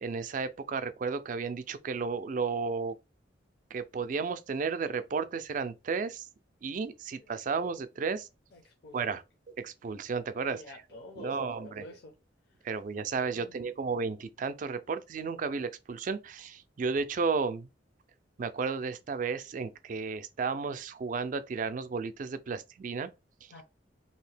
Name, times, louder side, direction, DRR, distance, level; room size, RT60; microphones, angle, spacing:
voice 1, 0.0-3.0 3.7-6.3 6.6-8.3 8.9-9.2 9.6-10.6 11.1-11.9 12.6-17.7 18.4-23.1, right 5 dB, 45° right, 0.3 m, -33 dB
voice 2, 8.5-9.2 10.4-12.1 12.5-12.6 13.2-13.7 23.5-23.6, left 2 dB, 60° left, 0.6 m, -50 dB
2.8 x 2.7 x 3.2 m
head